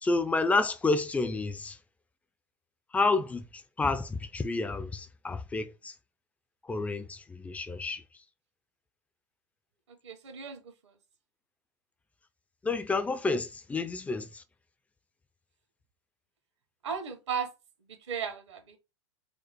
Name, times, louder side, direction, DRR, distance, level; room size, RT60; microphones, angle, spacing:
voice 1, 0.0-1.8 2.9-6.0 6.6-8.0 12.6-14.4, left 3 dB, 10° left, 0.4 m, -30 dB
voice 2, 10.0-10.6 16.8-17.5 18.1-18.8, right 6 dB, 70° right, 1.2 m, -35 dB
5.0 x 2.0 x 4.5 m
hypercardioid pair, 100°, 15 cm